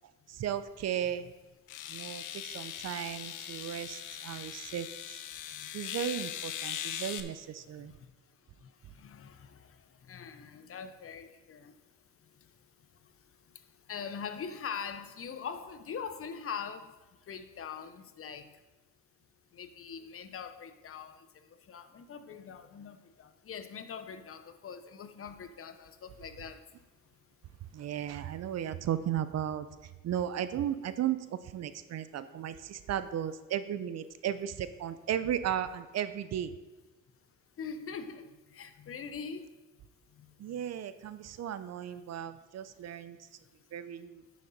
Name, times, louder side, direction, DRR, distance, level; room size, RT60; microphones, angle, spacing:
voice 1, 0.3-1.3 1.9-5.2 5.7-7.9 27.7-36.5 40.4-43.2 43.7-44.2, right 10 dB, 60° right, 12 dB, 0.6 m, -35 dB
sound 1, 0.8-0.9 1.7-7.2, left 10 dB, 85° left, 0.7 m, -40 dB
voice 2, 8.9-9.6 10.1-11.7 13.9-16.9 17.3-18.5 19.5-21.3 21.7-26.6 37.6-39.5, left 6 dB, 45° left, 10 dB, 0.8 m, -42 dB
9.4 x 6.4 x 4.1 m, 1.1 s
cardioid pair, 90°, 30 cm